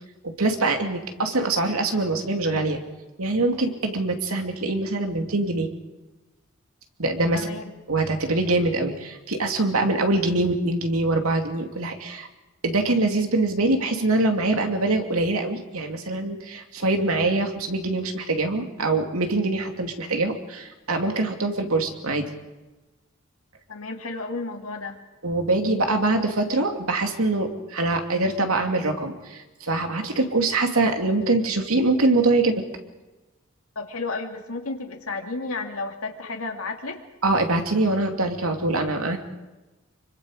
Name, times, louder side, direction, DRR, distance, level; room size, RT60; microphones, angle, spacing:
voice 1, 0.2-2.8 3.2-5.7 7.0-7.5 7.9-12.3 12.6-22.3 25.2-32.5 37.2-39.2, right 2 dB, 85° right, 4 dB, 2.6 m, -24 dB
voice 2, 7.3-7.7 23.7-25.0 33.8-37.1, left 3 dB, 90° left, 3 dB, 2.3 m, -32 dB
26.0 x 24.5 x 5.1 m, 1.1 s
head